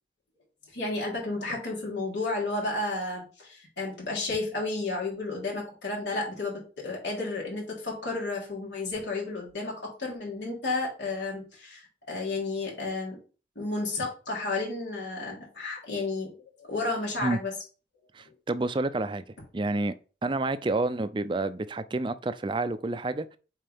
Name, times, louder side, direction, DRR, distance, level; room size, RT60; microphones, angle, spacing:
voice 1, 0.7-13.2 13.6-17.5, left 3 dB, 80° left, 3.7 m, -32 dB
voice 2, 18.1-19.2 19.5-19.9 20.2-23.4, right 2 dB, 25° right, 0.4 m, -29 dB
7.6 x 4.6 x 3.5 m
head